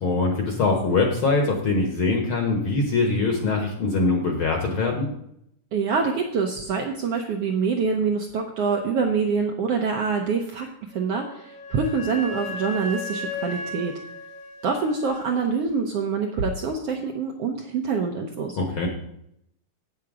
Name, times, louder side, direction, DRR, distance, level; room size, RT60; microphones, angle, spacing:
voice 1, 0.0-5.1 18.6-18.9, left 3 dB, 55° left, 2 dB, 1.5 m, -23 dB
voice 2, 5.7-13.9 14.6-18.6, right 5 dB, 70° right, 2 dB, 1.5 m, -25 dB
Wind instrument woodwind instrument, 10.9-15.6, left 3 dB, 80° left, 2.9 m, -36 dB
8.2 x 7.7 x 4.8 m, 0.75 s
omnidirectional pair, 3.6 m